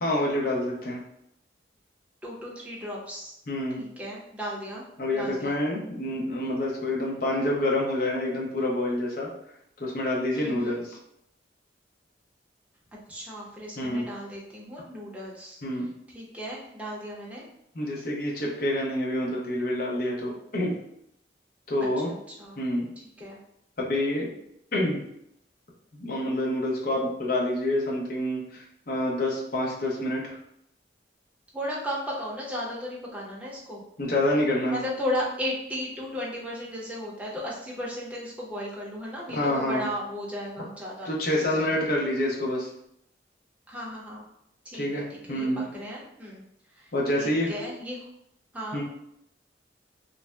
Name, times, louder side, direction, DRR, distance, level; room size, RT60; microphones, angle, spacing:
voice 1, 0.0-1.0 3.5-3.8 5.0-9.3 9.8-11.0 13.8-14.1 15.6-15.9 17.7-20.8 21.7-22.1 22.6-22.9 23.8-24.3 24.7-25.0 25.9-30.4 34.0-34.8 39.3-39.8 41.1-42.7 44.8-45.7 46.9-47.5 48.7-48.8, left 1 dB, 55° left, -3 dB, 0.7 m, -27 dB
voice 2, 2.2-3.3 3.8-4.9 5.1-5.6 10.3-10.8 13.1-15.6 16.1-17.4 22.1-22.6 23.0-23.4 31.5-33.8 34.7-41.1 41.5-42.0 43.7-44.2 44.6-46.4 46.7-46.9 47.2-48.1 48.5-48.8, equal, 10° right, -5 dB, 0.6 m, -35 dB
2.6 x 2.1 x 3.3 m, 0.76 s
head